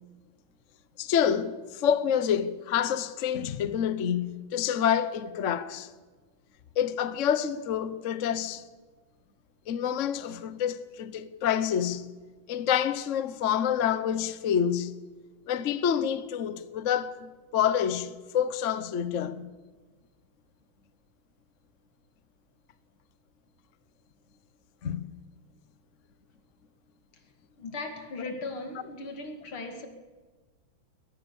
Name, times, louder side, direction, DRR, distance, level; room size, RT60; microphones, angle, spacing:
voice 1, 1.0-5.9 6.8-8.6 9.7-12.1 12.5-14.9 15.5-19.5 24.8-25.1, left 9 dB, 50° left, 1.0 m, -28 dB
voice 2, 27.6-29.9, left 3 dB, 85° left, 3.1 m, -37 dB
21.5 x 20.5 x 7.1 m
omnidirectional pair, 2.3 m